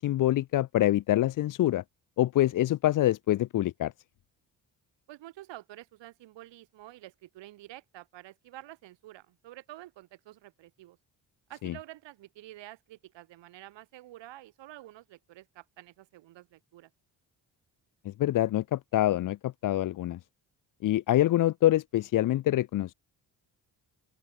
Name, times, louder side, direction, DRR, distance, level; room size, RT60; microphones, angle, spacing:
voice 1, 0.0-1.8 2.2-3.9 11.6-11.7 18.0-20.2 20.8-22.9, left 14 dB, 50° left, 0.5 m, -25 dB
voice 2, 5.1-11.0 11.5-16.9, right 15 dB, 85° right, 3.1 m, -49 dB
open air
cardioid pair, 75°, 42 cm